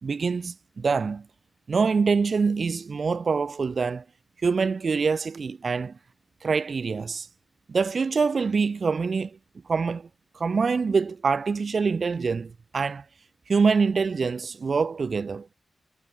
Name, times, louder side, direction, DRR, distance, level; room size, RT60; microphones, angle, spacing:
voice 1, 0.0-1.2 1.7-4.0 4.4-5.9 6.4-7.3 7.7-9.3 9.7-10.1 10.4-13.0 13.5-15.5, right 5 dB, 60° right, 1.0 m, -25 dB
cardioid pair, 55°, 0 cm